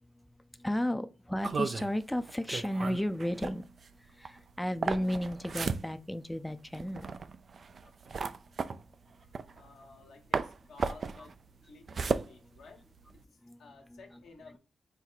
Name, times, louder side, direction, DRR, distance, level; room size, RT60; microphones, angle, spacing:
voice 1, 0.5-3.7 4.0-7.1 11.2-11.3 13.4-13.6 13.9-14.0, equal, 10° left, 0.4 m, -33 dB
sound 1, 1.4-10.0 10.3-13.2, right 5 dB, 60° right, 0.3 m, -35 dB
voice 2, 9.2-11.4 11.6-12.8 13.1-14.6, left 4 dB, 85° left, 1.1 m, -55 dB
4.3 x 2.1 x 4.0 m
supercardioid pair, 50°, 0 cm